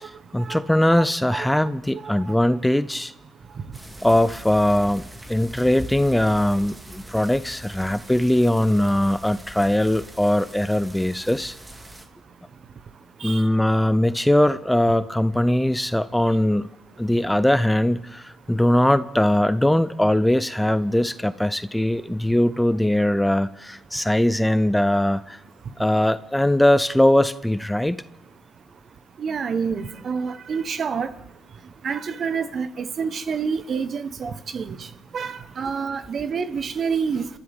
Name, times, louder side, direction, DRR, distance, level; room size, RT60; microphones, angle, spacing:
voice 1, 0.0-3.1 4.0-5.0 5.3-11.5 13.2-16.7 17.0-25.4 25.8-28.0, left 1 dB, 5° left, 14 dB, 0.6 m, -21 dB
sound 1, 3.7-12.1, right 1 dB, 15° right, 2.1 m, -41 dB
voice 2, 29.2-31.1 31.8-34.9 35.1-37.3, right 6 dB, 50° right, 11 dB, 1.1 m, -28 dB
30.0 x 13.0 x 3.6 m, 0.97 s
cardioid pair, 90°, 0 cm